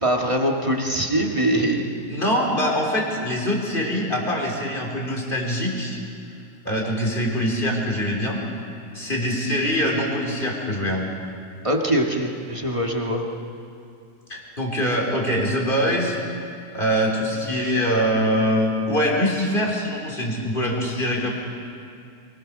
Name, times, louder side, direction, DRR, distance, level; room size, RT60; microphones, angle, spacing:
voice 1, 0.0-1.8 11.6-13.2, right 1 dB, 25° right, 1 dB, 1.9 m, -22 dB
voice 2, 2.1-6.0 6.6-8.4 8.9-11.1 14.3-16.2 16.7-21.3, equal, 40° left, 0 dB, 4.2 m, -23 dB
24.5 x 20.0 x 6.5 m, 2.5 s
omnidirectional pair, 1.3 m